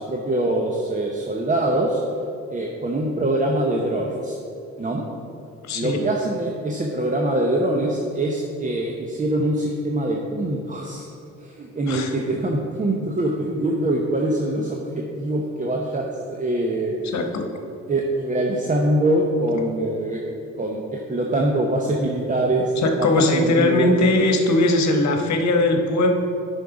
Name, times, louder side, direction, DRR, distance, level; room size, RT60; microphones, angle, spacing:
voice 1, 0.0-2.0 2.5-4.4 4.8-5.0 5.8-11.1 11.4-17.1 17.9-22.7 23.0-23.9, right 1 dB, 25° right, -1 dB, 0.9 m, -24 dB
voice 2, 5.6-6.1 11.9-12.1 17.0-17.5 22.8-26.1, left 2 dB, 65° left, 4 dB, 1.2 m, -20 dB
9.2 x 5.5 x 4.8 m, 2.5 s
cardioid pair, 90°, 30 cm